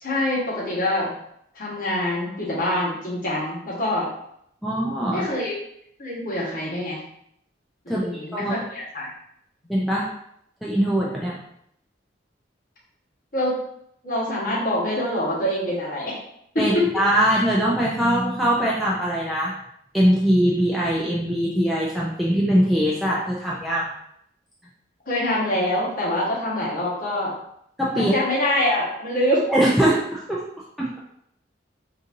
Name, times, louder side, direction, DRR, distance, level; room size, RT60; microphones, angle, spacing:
voice 1, 0.0-1.1 1.5-4.1 5.1-5.6 6.0-7.0 7.8-9.1 13.3-13.6 14.0-16.1 16.5-16.7 25.1-27.3 27.9-29.4, left 1 dB, 45° left, -6 dB, 1.3 m, -25 dB
voice 2, 4.6-5.2 7.9-8.0 8.3-8.6 9.7-10.1 10.6-11.4 16.6-19.5 19.9-23.9 27.8-28.1 29.5-30.4 30.8-31.0, equal, ahead, -6 dB, 0.4 m, -22 dB
4.0 x 2.6 x 2.6 m, 0.73 s
head